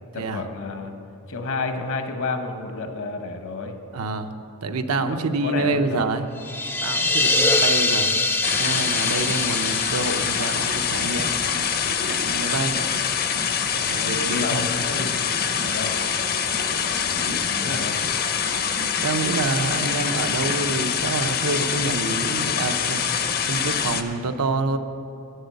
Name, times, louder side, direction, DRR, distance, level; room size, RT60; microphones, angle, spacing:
voice 1, 0.1-0.9 1.3-3.8 5.0-6.2 7.1-7.2 14.1-15.9 16.9-18.0, left 3 dB, 60° left, 6 dB, 1.0 m, -31 dB
voice 2, 3.9-4.3 4.6-6.3 6.8-12.8 13.7-14.7 17.2-17.4 19.0-23.1 23.5-24.8, right 3 dB, 75° right, 7 dB, 0.7 m, -27 dB
sound 1, 6.4-12.0, left 2 dB, 10° left, 0.4 m, -24 dB
sound 2, 8.4-24.0, left 7 dB, 45° left, 0.7 m, -25 dB
10.5 x 7.9 x 8.0 m, 2.5 s
head